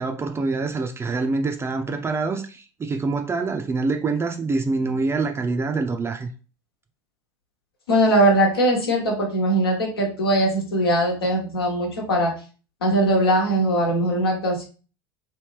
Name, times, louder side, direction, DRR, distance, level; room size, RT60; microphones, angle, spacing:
voice 1, 0.0-6.3, right 3 dB, 20° right, 0.4 m, -25 dB
voice 2, 7.9-12.3 12.8-14.7, right 1 dB, 80° left, 1.2 m, -20 dB
3.2 x 2.7 x 3.2 m
hypercardioid pair, 75°, 12 cm